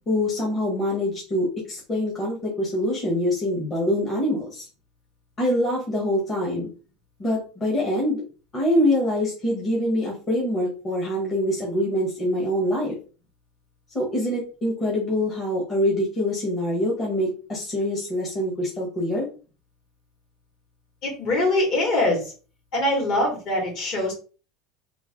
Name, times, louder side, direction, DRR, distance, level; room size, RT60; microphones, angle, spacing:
voice 1, 0.1-4.7 5.4-6.7 7.2-8.2 8.5-13.0 13.9-19.3, left 1 dB, 25° left, -4 dB, 1.1 m, -24 dB
voice 2, 21.0-22.3 22.7-24.1, left 1 dB, 50° left, 0 dB, 1.9 m, -23 dB
3.2 x 2.7 x 3.7 m, 0.36 s
cardioid pair, 155°, 0 cm